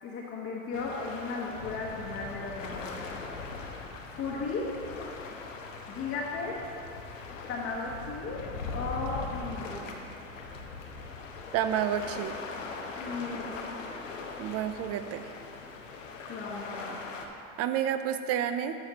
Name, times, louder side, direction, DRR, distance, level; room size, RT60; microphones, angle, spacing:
voice 1, 0.0-3.2 4.1-4.7 5.9-6.7 7.5-8.4 8.7-10.0 13.0-13.5 16.3-17.0, left 3 dB, 35° left, -5 dB, 1.3 m, -35 dB
sound 1, 0.7-17.3, left 4 dB, 80° left, 1.0 m, -41 dB
voice 2, 11.5-12.4 14.4-15.3 17.6-18.8, right 10 dB, 40° right, 10 dB, 0.6 m, -29 dB
12.5 x 6.4 x 3.0 m, 2.6 s
hypercardioid pair, 90°, 39 cm